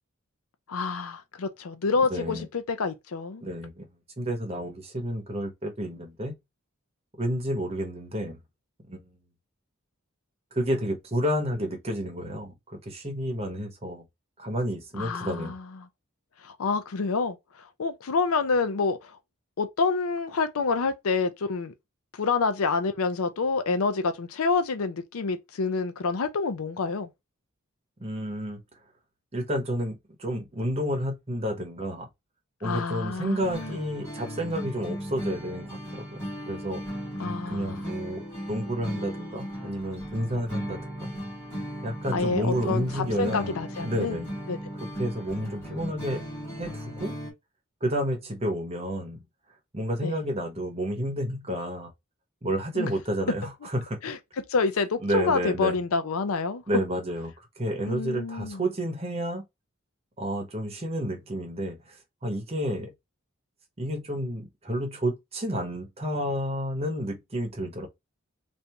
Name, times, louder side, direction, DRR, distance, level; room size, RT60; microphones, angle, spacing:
voice 1, 0.7-3.4 15.0-15.6 16.4-19.1 19.6-21.7 22.1-27.1 32.6-33.8 37.2-37.8 42.1-44.2 44.5-44.6 50.0-50.1 52.8-52.9 54.0-54.2 54.5-56.6 57.9-58.6, left 4 dB, 80° left, 0.5 m, -28 dB
voice 2, 2.1-2.5 3.4-3.9 4.2-6.3 7.2-8.4 8.9-9.2 10.5-14.0 14.4-15.5 28.0-28.6 29.3-32.1 32.6-36.8 37.5-41.1 41.8-43.6 43.8-44.3 44.8-46.2 46.5-47.1 47.8-49.2 49.7-51.9 52.4-54.0 55.0-55.7 56.7-59.4 60.2-62.9 63.8-67.9, equal, 30° right, 0.9 m, -30 dB
sound 1, 33.4-47.3, equal, 10° left, 1.5 m, -36 dB
3.3 x 2.6 x 2.9 m
head